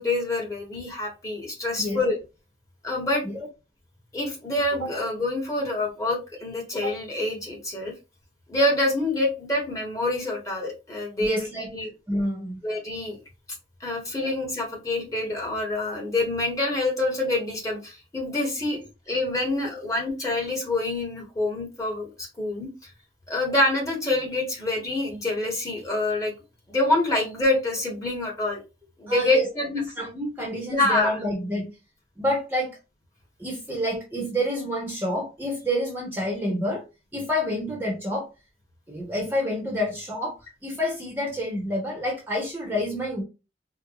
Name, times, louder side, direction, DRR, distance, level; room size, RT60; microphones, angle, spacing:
voice 1, 0.0-2.2 2.8-3.2 4.1-7.9 8.5-11.5 11.7-11.9 12.6-13.2 13.8-18.8 19.1-22.7 23.3-26.3 26.7-28.6 29.0-29.7 30.7-31.2, left 2 dB, 20° left, -1 dB, 1.4 m, -26 dB
voice 2, 11.2-11.7 12.1-12.6 29.1-31.7 32.2-32.7 33.4-36.8 37.1-38.3 38.9-40.3 40.6-43.2, left 1 dB, 10° right, -2 dB, 0.9 m, -28 dB
4.5 x 2.2 x 2.4 m, 0.28 s
head